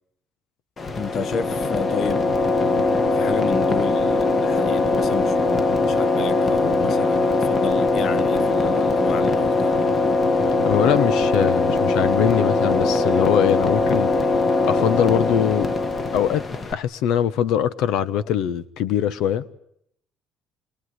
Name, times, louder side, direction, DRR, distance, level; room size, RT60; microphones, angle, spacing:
sound 1, 0.8-16.7, left 3 dB, 25° left, 1.5 m, -21 dB
voice 1, 1.0-2.3 3.1-9.8, left 6 dB, 45° left, 1.3 m, -31 dB
voice 2, 10.6-14.1 14.7-15.7 16.1-19.5, left 10 dB, 80° left, 1.1 m, -22 dB
27.5 x 22.5 x 9.6 m
cardioid pair, 150°, 0 cm